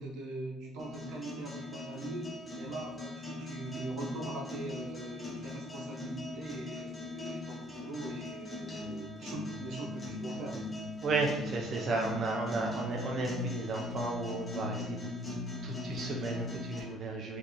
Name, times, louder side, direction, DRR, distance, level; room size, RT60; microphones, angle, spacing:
voice 1, 0.0-10.6, right 2 dB, 85° right, -1 dB, 0.7 m, -42 dB
sound 1, 0.8-16.8, left 2 dB, 10° left, 0.8 m, -40 dB
voice 2, 11.0-15.0 15.3-17.4, right 3 dB, 40° right, 0 dB, 0.4 m, -34 dB
2.8 x 2.5 x 3.6 m, 1.1 s
cardioid pair, 145°, 0 cm